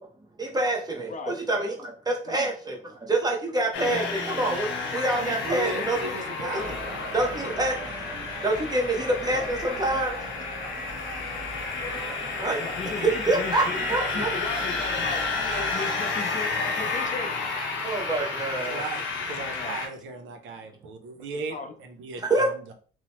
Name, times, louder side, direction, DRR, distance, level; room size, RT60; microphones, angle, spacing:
voice 1, 0.4-6.2 6.4-6.6 7.1-7.8 8.4-10.2 12.4-12.6 13.0-13.6 13.9-14.3 17.8-18.8 22.2-22.5, right 2 dB, 20° right, 0 dB, 0.8 m, -26 dB
sound 1, 3.7-19.9, left 4 dB, 80° left, 0.7 m, -31 dB
voice 2, 3.8-4.3 9.3-9.5 12.0-12.2 12.6-17.3 19.5-19.8 21.5-21.7 22.2-22.3, left 4 dB, 40° left, 6 dB, 0.5 m, -36 dB
voice 3, 5.0-6.8 18.5-21.5 21.8-22.7, right 3 dB, 75° right, 5 dB, 0.6 m, -36 dB
sound 2, 6.6-15.7, right 1 dB, 55° right, 1.2 m, -40 dB
2.9 x 2.0 x 2.9 m, 0.42 s
cardioid pair, 90°, 20 cm